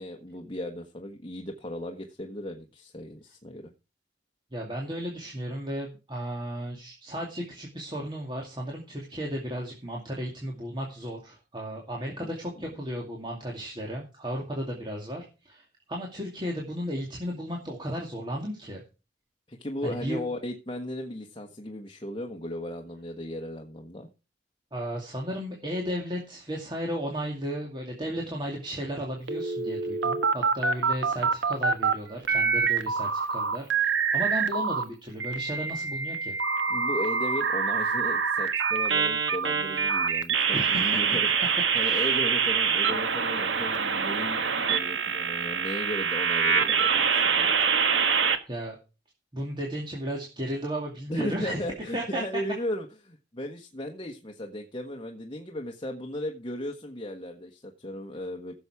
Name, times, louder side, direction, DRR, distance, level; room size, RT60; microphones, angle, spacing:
voice 1, 0.0-3.7 12.2-12.3 19.5-24.1 36.7-41.4 41.7-47.6 51.1-58.5, left 1 dB, 25° left, 1.3 m, -36 dB
voice 2, 4.5-18.8 19.8-20.3 24.7-36.3 40.5-41.0 41.8-42.1 48.5-48.8 49.3-51.6 51.9-52.2, equal, 25° right, 2.4 m, -34 dB
sound 1, 29.3-31.9 32.2-34.8 35.2-48.4, right 6 dB, 80° right, 1.4 m, -25 dB
16.0 x 7.0 x 4.8 m
head